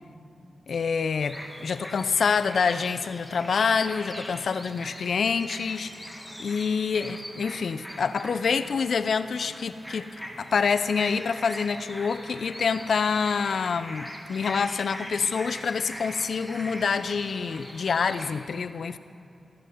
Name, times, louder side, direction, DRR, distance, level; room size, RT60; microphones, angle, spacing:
voice 1, 0.7-10.1 10.4-19.0, left 5 dB, 70° left, 12 dB, 0.3 m, -27 dB
sound 1, 1.2-18.4, equal, ahead, 1.4 m, -42 dB
15.0 x 5.7 x 7.7 m, 2.5 s
wide cardioid pair, 115°, 0 cm